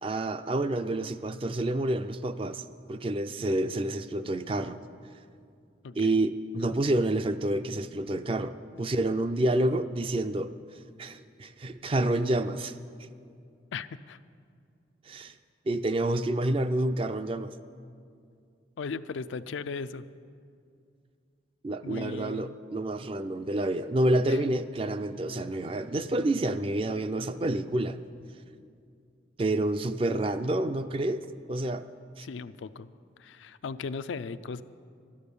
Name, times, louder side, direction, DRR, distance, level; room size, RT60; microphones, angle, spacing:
voice 1, 0.0-4.8 5.9-10.5 11.0-12.7 15.1-15.3 15.7-17.6 21.6-28.0 29.4-31.8 32.2-32.3, right 1 dB, 30° right, 11 dB, 0.4 m, -28 dB
voice 2, 5.8-6.2 13.7-14.2 18.8-20.0 21.8-22.6 24.3-24.4 32.2-32.9 33.2-34.6, left 4 dB, 85° left, 12 dB, 0.4 m, -37 dB
12.0 x 11.5 x 6.8 m, 2.3 s
head